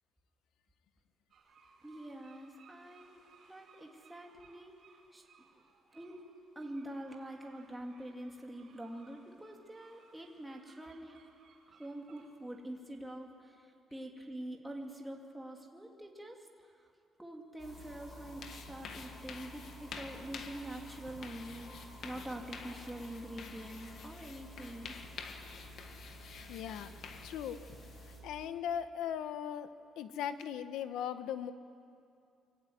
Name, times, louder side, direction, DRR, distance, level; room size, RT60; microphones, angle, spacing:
sound 1, 1.3-13.0, right 4 dB, 50° right, 4.1 m, -64 dB
voice 1, 1.8-3.2 3.5-4.8 5.1-5.2 5.5-5.6 5.9-6.2 6.6-11.3 11.7-16.9 17.2-21.8 22.0-24.9, right 1 dB, 5° right, 0 dB, 2.5 m, -45 dB
sound 2, 17.6-28.2, equal, 30° left, 5.6 m, -52 dB
sound 3, 17.8-28.0, left 5 dB, 50° left, 1.9 m, -50 dB
voice 2, 26.5-26.9 27.2-27.6 28.2-29.7 30.0-31.5, left 9 dB, 85° left, 10 dB, 1.4 m, -38 dB
24.0 x 24.0 x 9.4 m, 2.4 s
cardioid pair, 170°, 0 cm